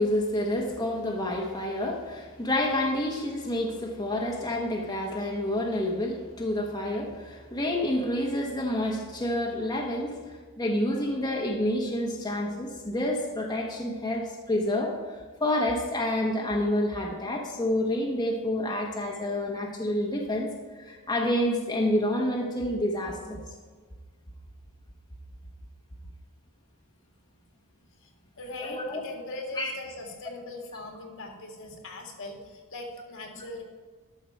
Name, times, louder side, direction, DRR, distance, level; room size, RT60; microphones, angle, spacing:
voice 1, 0.0-20.5 20.8-23.4 28.6-29.0 29.6-29.7, left 1 dB, 20° left, -1 dB, 1.2 m, -28 dB
voice 2, 28.0-33.6, left 2 dB, 60° left, 2 dB, 1.8 m, -40 dB
12.0 x 6.4 x 4.6 m, 1.5 s
head